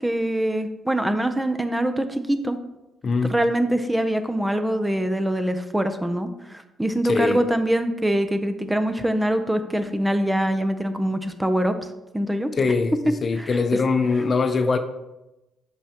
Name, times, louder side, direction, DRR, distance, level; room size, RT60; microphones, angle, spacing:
voice 1, 0.0-2.6 3.3-12.5 13.4-13.8, right 1 dB, 10° right, 9 dB, 0.5 m, -24 dB
voice 2, 3.0-3.3 7.0-7.4 12.5-14.8, left 4 dB, 40° left, 9 dB, 0.5 m, -22 dB
6.2 x 5.4 x 2.9 m, 0.97 s
cardioid pair, 90°, 0 cm